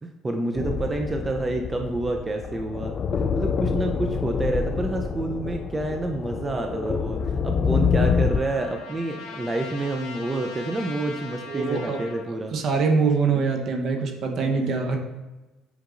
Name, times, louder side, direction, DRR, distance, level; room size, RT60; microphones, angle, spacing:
voice 1, 0.0-3.0 3.3-12.5 14.4-14.7, right 2 dB, 20° right, 3 dB, 0.5 m, -28 dB
sound 1, 0.6-8.4, left 6 dB, 45° left, 0.3 m, -26 dB
Trumpet, 7.2-12.3, left 4 dB, 75° left, 0.8 m, -41 dB
voice 2, 11.5-12.0 12.5-15.0, right 4 dB, 55° right, 3 dB, 0.9 m, -24 dB
8.0 x 5.2 x 2.5 m, 1.1 s
supercardioid pair, 90°, 0 cm